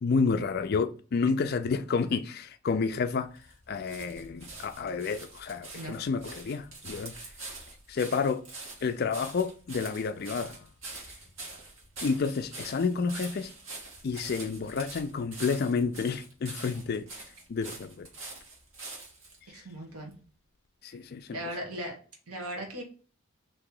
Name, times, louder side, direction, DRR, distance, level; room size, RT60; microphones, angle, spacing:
voice 1, 0.0-7.3 7.9-8.4 8.8-11.1 12.0-13.5 14.0-18.1 19.4-19.6 20.8-21.6, left 5 dB, 45° left, 0.3 m, -30 dB
sound 1, 2.8-19.4 20.1-20.2, right 3 dB, 70° right, 1.5 m, -45 dB
voice 2, 19.5-20.1 21.3-22.0 22.3-22.8, equal, 90° right, 1.2 m, -37 dB
2.9 x 2.8 x 3.7 m
head